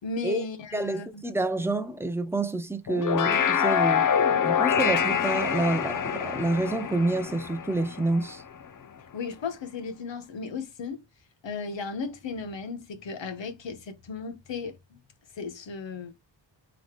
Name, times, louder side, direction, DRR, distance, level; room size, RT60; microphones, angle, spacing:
voice 1, 0.0-1.2 1.5-1.7 9.1-11.0 11.4-15.0 15.4-16.1, left 4 dB, 70° left, 1.2 m, -35 dB
voice 2, 0.7-4.1 4.4-8.4, right 2 dB, 5° right, 0.5 m, -28 dB
sound 1, 2.9-8.4, left 7 dB, 45° left, 0.6 m, -26 dB
3.9 x 3.2 x 3.2 m
wide cardioid pair, 145°, 46 cm